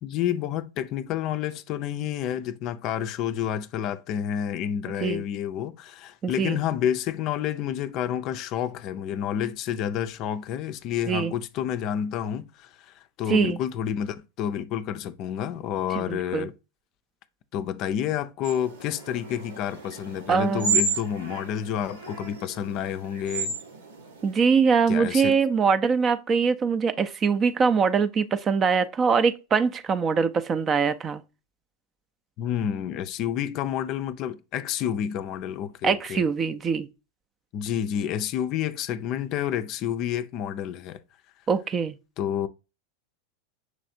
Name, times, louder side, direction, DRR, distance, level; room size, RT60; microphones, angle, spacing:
voice 1, 0.0-16.5 17.5-23.5 24.9-25.4 32.4-36.2 37.5-41.0 42.2-42.5, left 9 dB, 45° left, 0.4 m, -29 dB
voice 2, 6.2-6.6 11.1-11.3 13.3-13.6 15.9-16.5 20.3-20.7 24.2-31.2 35.8-36.9 41.5-42.0, right 5 dB, 30° right, 0.4 m, -23 dB
sound 1, 18.4-24.4, right 4 dB, 80° right, 1.1 m, -32 dB
6.1 x 3.2 x 2.6 m
hypercardioid pair, 90°, 0 cm